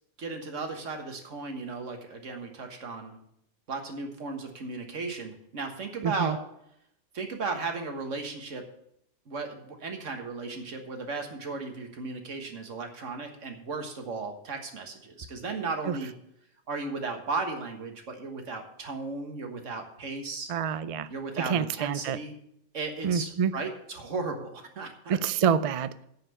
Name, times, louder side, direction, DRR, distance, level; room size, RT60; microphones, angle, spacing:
voice 1, 0.2-3.2 3.7-6.4 7.1-8.6 9.3-16.1 16.7-20.5 21.1-22.3 22.7-25.2, right 3 dB, 85° right, 5 dB, 1.8 m, -35 dB
voice 2, 6.0-6.4 15.9-16.0 20.5-21.1 21.5-22.2 23.0-23.5 25.1-25.9, right 7 dB, 65° right, 14 dB, 0.3 m, -27 dB
9.1 x 5.6 x 8.2 m, 0.74 s
omnidirectional pair, 1.2 m